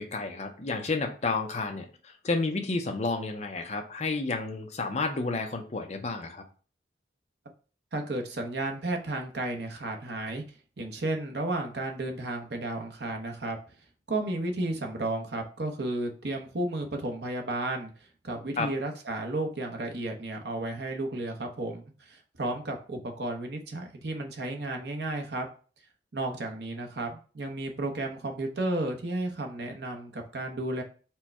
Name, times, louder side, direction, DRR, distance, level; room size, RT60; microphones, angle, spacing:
voice 1, 0.0-6.4 18.6-18.7, left 3 dB, 40° left, 4 dB, 0.6 m, -31 dB
voice 2, 7.9-10.4 10.8-13.6 14.1-25.5 26.1-30.8, right 2 dB, 65° right, 3 dB, 0.8 m, -33 dB
4.5 x 2.2 x 4.3 m, 0.38 s
head